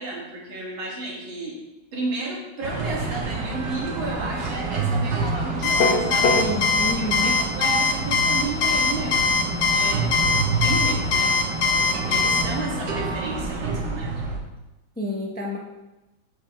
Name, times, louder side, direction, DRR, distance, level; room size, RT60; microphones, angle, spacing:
voice 1, 0.0-1.6 1.9-6.4 6.9-11.3 12.1-14.1, right 2 dB, 80° right, -4 dB, 2.9 m, -32 dB
sound 1, 2.6-14.4, right 3 dB, 65° right, 1.8 m, -28 dB
Alarm, 5.6-12.4, left 5 dB, 60° left, 0.8 m, -21 dB
sound 2, 5.8-6.5, left 3 dB, 75° left, 1.6 m, -20 dB
voice 2, 6.3-7.4 15.0-15.6, left 1 dB, 10° left, -2 dB, 0.6 m, -29 dB
14.0 x 5.3 x 3.2 m, 1.0 s
omnidirectional pair, 2.2 m